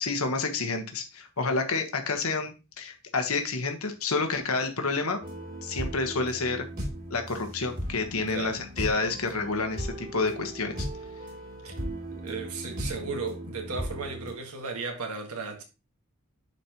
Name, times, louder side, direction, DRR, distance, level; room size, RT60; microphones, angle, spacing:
voice 1, 0.0-5.2 5.6-6.7 7.1-10.9, left 3 dB, 80° left, 1.3 m, -29 dB
sound 1, 5.2-14.3, equal, 45° right, 2.9 m, -37 dB
voice 2, 8.2-8.6 11.6-11.8 12.1-15.6, right 4 dB, 85° right, 1.7 m, -35 dB
10.5 x 4.3 x 3.0 m
head